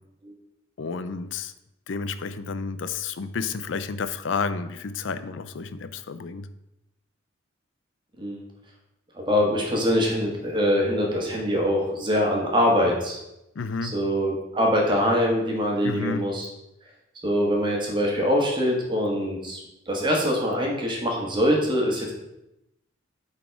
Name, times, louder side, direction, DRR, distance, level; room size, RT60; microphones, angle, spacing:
voice 1, 0.8-1.5 1.9-6.5 13.6-13.9 15.8-16.3, left 5 dB, 70° left, 12 dB, 0.5 m, -31 dB
voice 2, 9.1-13.2 13.8-16.5 17.2-22.1, equal, 25° right, -1 dB, 1.5 m, -23 dB
8.6 x 4.1 x 4.5 m, 0.89 s
head